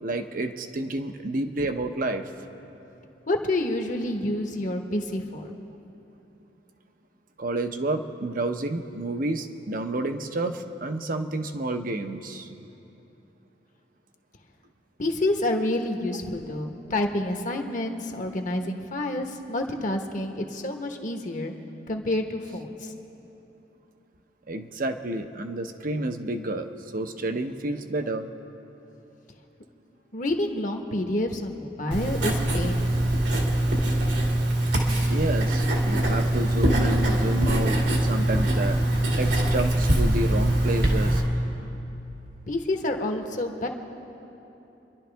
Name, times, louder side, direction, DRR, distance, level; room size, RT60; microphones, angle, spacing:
voice 1, 0.0-2.2 7.4-12.5 24.5-28.3 35.1-38.8 39.2-41.2, right 2 dB, 50° right, 7 dB, 0.8 m, -30 dB
voice 2, 3.3-5.5 15.0-21.5 21.9-22.9 30.1-33.1 42.5-43.7, left 1 dB, 45° left, 4 dB, 1.2 m, -28 dB
Writing, 31.9-41.2, right 1 dB, 85° right, 2.3 m, -23 dB
28.5 x 11.5 x 3.4 m, 3.0 s
head